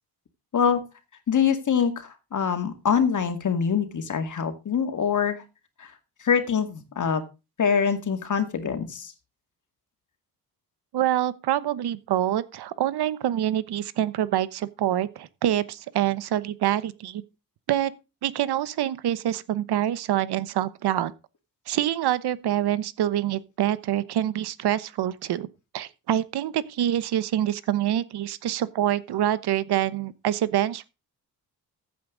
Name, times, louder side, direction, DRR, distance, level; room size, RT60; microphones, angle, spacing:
voice 1, 1.3-5.4 5.8-5.9 6.2-7.2 7.6-9.1, left 7 dB, 50° left, 2.4 m, -24 dB
voice 2, 10.9-17.2 17.7-17.9 18.2-21.1 21.7-25.5 25.7-30.9, right 12 dB, 90° right, 1.0 m, -26 dB
14.5 x 8.5 x 3.9 m
cardioid pair, 120°, 38 cm